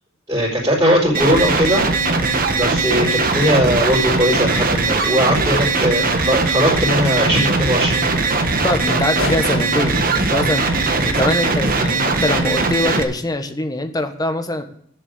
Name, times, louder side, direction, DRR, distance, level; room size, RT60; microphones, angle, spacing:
voice 1, 0.3-1.8 2.5-8.1, equal, 20° right, -8 dB, 4.1 m, -19 dB
sound 1, 1.1-13.0, right 3 dB, 45° right, 1.4 m, -19 dB
voice 2, 8.6-10.6 11.0-14.6, left 1 dB, 20° left, 7 dB, 1.3 m, -22 dB
sound 2, 9.2-11.8, left 3 dB, 75° left, 1.6 m, -33 dB
10.5 x 7.5 x 8.4 m, 0.63 s
head